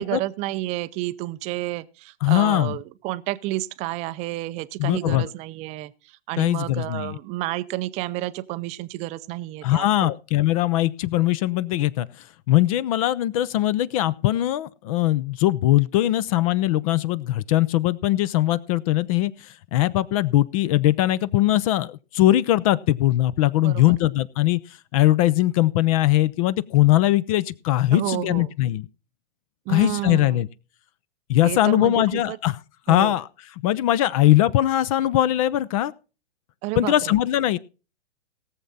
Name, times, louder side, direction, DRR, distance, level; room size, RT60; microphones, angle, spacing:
voice 1, 0.0-10.2 23.6-23.9 27.9-28.6 29.7-30.5 31.4-32.4 32.9-33.2 36.6-37.2, right 17 dB, 20° right, 0.5 m, -30 dB
voice 2, 2.2-2.7 4.8-5.3 6.4-7.2 9.6-12.1 12.5-19.3 19.7-24.6 24.9-28.8 29.7-30.5 31.3-32.6 32.9-33.2 33.6-35.9 36.8-37.6, left 14 dB, 35° left, 0.5 m, -21 dB
18.0 x 7.3 x 4.0 m
hypercardioid pair, 125°, 33 cm